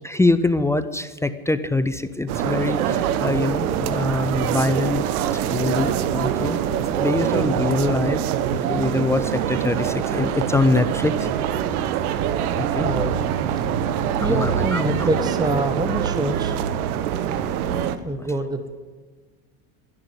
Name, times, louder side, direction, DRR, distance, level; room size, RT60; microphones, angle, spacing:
voice 1, 0.0-5.1 5.3-6.6 6.9-8.2 8.5-11.3 12.6-12.9 14.2-15.1, left 2 dB, 5° left, 11 dB, 0.5 m, -24 dB
sound 1, 2.3-18.0, right 9 dB, 80° right, 1.0 m, -24 dB
voice 2, 12.8-13.3 13.6-13.7 14.2-16.6 17.3-17.4 18.0-18.8, right 1 dB, 10° right, 8 dB, 1.1 m, -26 dB
12.5 x 11.0 x 7.9 m, 1.4 s
supercardioid pair, 100°, 43 cm